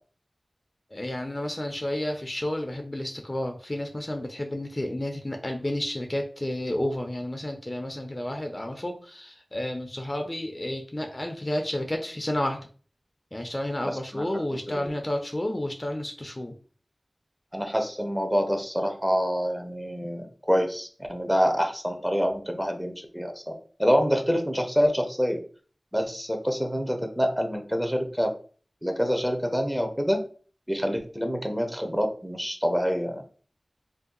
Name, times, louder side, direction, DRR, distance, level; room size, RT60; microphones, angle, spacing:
voice 1, 0.9-12.6 13.3-16.5, left 1 dB, 35° left, 4 dB, 0.5 m, -31 dB
voice 2, 13.8-14.2 14.7-14.9 17.5-23.5 23.8-25.4 25.9-28.3 28.8-30.2 30.7-33.2, equal, 5° right, 4 dB, 0.7 m, -26 dB
2.6 x 2.2 x 3.7 m, 0.41 s
wide cardioid pair, 40°, 0 cm